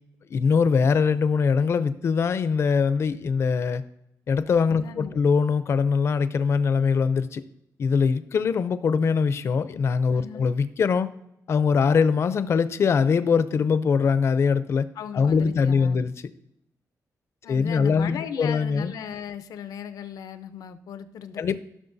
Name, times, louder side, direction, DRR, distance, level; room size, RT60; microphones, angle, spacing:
voice 1, 0.3-3.8 4.3-7.4 7.8-11.1 11.5-14.9 15.1-16.1 17.5-18.9 21.4-21.6, left 5 dB, 45° left, 14 dB, 0.5 m, -22 dB
voice 2, 4.7-5.2 10.1-10.5 15.0-16.0 17.4-21.6, left 8 dB, 90° left, 11 dB, 0.6 m, -37 dB
14.5 x 6.3 x 2.6 m, 0.79 s
wide cardioid pair, 180°, 6 cm